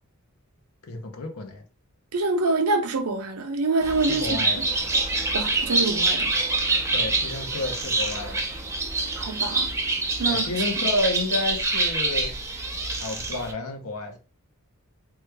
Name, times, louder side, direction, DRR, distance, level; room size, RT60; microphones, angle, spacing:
voice 1, 0.9-1.6 4.1-4.6 6.9-8.5 10.3-12.3 13.0-14.2, left 2 dB, 70° left, 0.7 m, -30 dB
voice 2, 2.1-4.7 5.3-6.3 9.2-9.7 10.2-10.5, right 3 dB, 75° right, 0.6 m, -26 dB
Bird, 3.8-13.5, right 2 dB, 15° right, 0.4 m, -26 dB
3.1 x 2.3 x 3.2 m
head